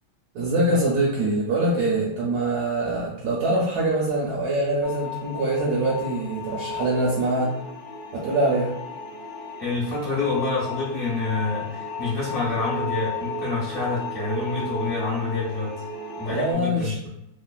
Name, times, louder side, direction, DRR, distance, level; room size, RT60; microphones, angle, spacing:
voice 1, 0.3-7.6 8.1-8.7 16.2-17.0, right 1 dB, 75° right, -4 dB, 0.9 m, -24 dB
sound 1, 4.8-16.5, left 2 dB, 75° left, 0.9 m, -34 dB
voice 2, 9.6-15.8 16.2-17.1, left 3 dB, 45° left, -6 dB, 0.7 m, -27 dB
3.1 x 2.0 x 2.3 m, 0.80 s
omnidirectional pair, 2.1 m